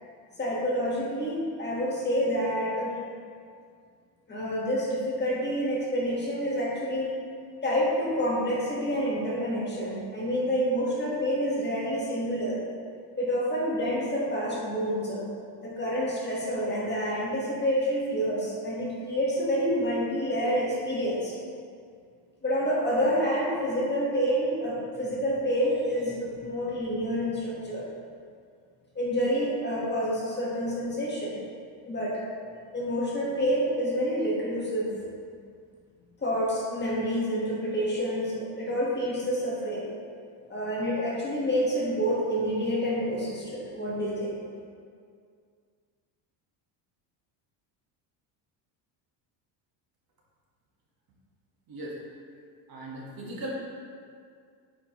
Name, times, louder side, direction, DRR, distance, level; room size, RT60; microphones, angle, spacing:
voice 1, 0.4-2.9 4.3-7.1 7.6-12.6 13.2-15.3 15.6-21.3 22.4-27.8 28.9-31.4 31.8-32.2 32.7-34.9 36.2-39.9 40.5-44.3, equal, 20° left, -5 dB, 1.4 m, -28 dB
voice 2, 52.7-53.6, equal, 45° right, -3 dB, 1.5 m, -37 dB
8.2 x 5.1 x 3.0 m, 2.2 s
cardioid pair, 125°, 47 cm